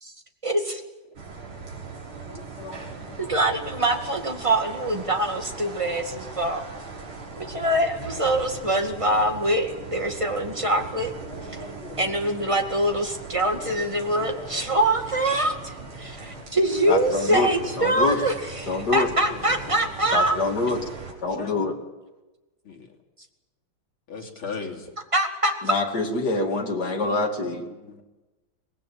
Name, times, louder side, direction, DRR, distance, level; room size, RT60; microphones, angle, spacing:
voice 1, 0.4-0.8 3.2-6.6 7.4-11.1 11.5-11.6 12.0-20.4 25.1-25.5, right 1 dB, 15° right, 4 dB, 2.1 m, -24 dB
sound 1, 1.1-21.1, right 4 dB, 80° right, 5.2 m, -39 dB
voice 2, 2.1-3.4 4.0-4.1 7.0-7.6 11.2-12.1 13.7-14.1 14.3-14.8 16.2-16.5 17.1-18.1 19.3-19.8 21.4-21.7 22.6-22.9 24.1-24.9 26.7-26.9 27.4-28.0, left 4 dB, 80° left, 1 dB, 3.7 m, -41 dB
voice 3, 16.9-17.5 17.8-18.2 18.7-19.1 20.1-20.8 21.2-21.7 25.6-27.7, left 3 dB, 50° left, 2 dB, 3.2 m, -25 dB
23.5 x 19.0 x 8.8 m, 1.1 s
omnidirectional pair, 2.3 m